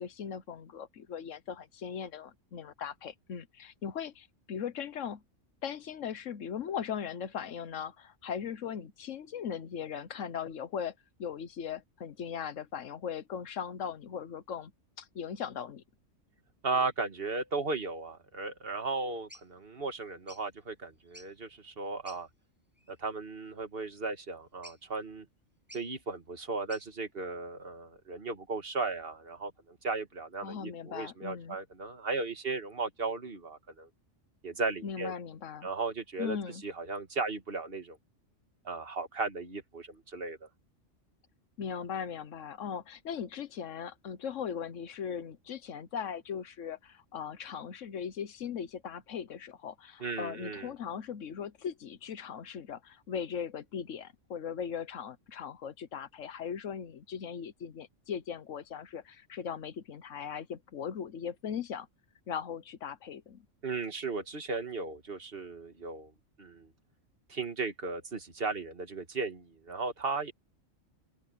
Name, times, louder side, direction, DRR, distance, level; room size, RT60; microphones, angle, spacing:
voice 1, 0.0-5.2 5.6-14.7 15.0-15.8 30.4-31.6 34.8-35.7 36.2-36.6 41.6-61.9 62.3-63.5, left 7 dB, 75° left, 1.3 m, -39 dB
voice 2, 16.6-22.3 22.9-25.3 25.7-33.9 34.4-35.1 35.6-36.4 36.6-38.0 38.6-40.5 50.0-50.7 63.6-66.1 66.4-66.7 67.3-70.3, right 3 dB, 45° right, 2.0 m, -36 dB
sound 1, 19.3-19.5 20.3-20.5 21.0-21.4 22.1-22.2 22.8-23.0 24.6-25.0 25.7-25.9 26.7-26.9, equal, 10° right, 7.3 m, -52 dB
open air
omnidirectional pair, 1.3 m